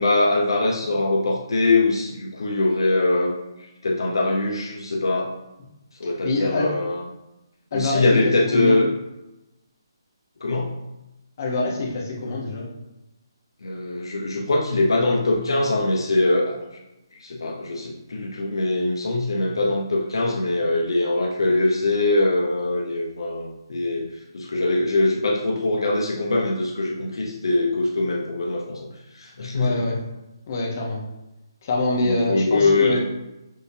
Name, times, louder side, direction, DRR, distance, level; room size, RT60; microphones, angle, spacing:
voice 1, 0.0-3.3 3.8-5.3 6.0-7.0 7.7-8.9 10.4-10.7 13.6-16.6 17.2-24.1 24.3-28.9 29.2-29.8 32.0-33.0, left 2 dB, 75° left, -1 dB, 0.7 m, -22 dB
voice 2, 6.2-6.8 7.7-8.8 11.4-12.7 29.5-30.0 30.5-31.0 31.6-33.0, left 2 dB, 40° left, -2 dB, 1.0 m, -25 dB
6.3 x 2.7 x 2.7 m, 0.95 s
hypercardioid pair, 160°, 2 cm